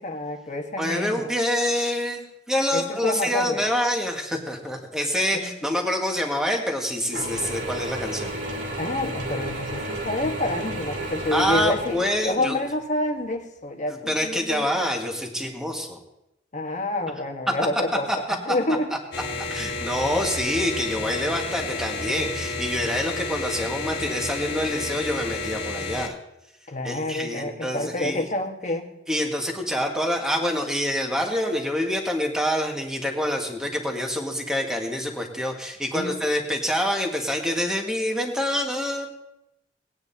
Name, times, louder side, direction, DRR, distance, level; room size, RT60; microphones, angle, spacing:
voice 1, 0.0-1.3 2.7-3.7 5.3-5.5 8.8-14.7 16.5-18.1 18.4-18.9 26.7-28.9 35.9-36.2, left 1 dB, 45° left, 4 dB, 1.3 m, -28 dB
voice 2, 0.8-8.3 11.3-12.6 13.9-16.0 18.1-18.2 19.5-26.1 26.8-28.3 29.1-39.1, equal, 5° right, 1 dB, 1.6 m, -26 dB
Mechanisms / Drill, 7.1-12.6, right 1 dB, 75° right, 2.6 m, -32 dB
sound 1, 19.1-26.1, left 3 dB, 60° left, 1.7 m, -31 dB
19.0 x 9.6 x 2.7 m, 0.87 s
head